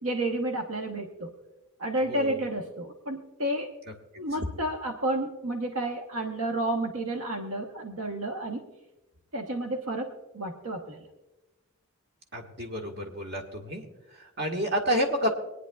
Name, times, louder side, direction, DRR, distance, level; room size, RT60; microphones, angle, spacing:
voice 1, 0.0-1.3 1.8-3.7 4.1-8.6 9.3-11.0, right 1 dB, 75° right, 2 dB, 1.0 m, -31 dB
voice 2, 2.1-2.4 12.3-13.8 14.2-15.3, equal, 50° right, 2 dB, 1.6 m, -29 dB
25.5 x 9.8 x 2.3 m, 1.0 s
head